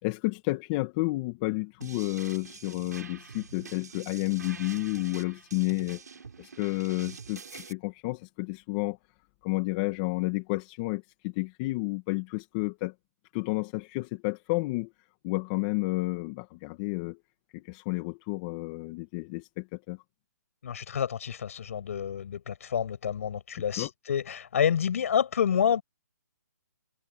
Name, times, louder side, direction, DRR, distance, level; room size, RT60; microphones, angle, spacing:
voice 1, 0.0-6.0 6.4-9.0 9.4-12.9 13.3-14.9 15.2-17.2 17.5-20.0 23.8-23.9, left 24 dB, 25° left, 2.1 m, -31 dB
sound 1, 1.8-7.7, right 5 dB, 70° right, 7.5 m, -46 dB
voice 2, 20.6-25.8, left 8 dB, 50° left, 6.6 m, -28 dB
hypercardioid pair, 155°, 9 cm